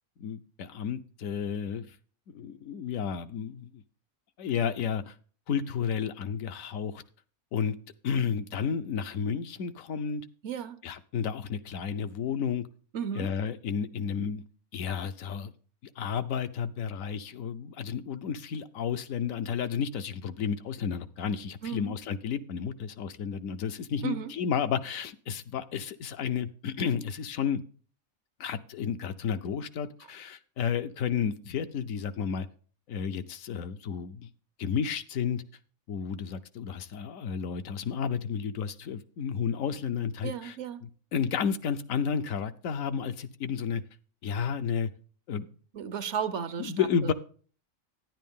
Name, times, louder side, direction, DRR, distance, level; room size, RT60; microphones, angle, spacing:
voice 1, 0.2-2.0 2.3-3.8 4.4-5.1 5.5-7.0 7.5-7.8 8.0-10.2 10.8-12.6 13.1-14.4 14.7-15.5 16.0-27.6 28.4-32.5 32.9-34.3 34.6-35.4 35.9-40.6 40.8-43.8 44.2-44.9 45.3-45.5 46.6-47.1, left 7 dB, 75° left, 1.0 m, -32 dB
voice 2, 10.4-10.8 12.9-13.3 21.6-21.9 24.0-24.3 40.2-40.8 45.7-47.1, right 8 dB, 65° right, 0.8 m, -34 dB
10.5 x 9.9 x 3.6 m
omnidirectional pair, 1.5 m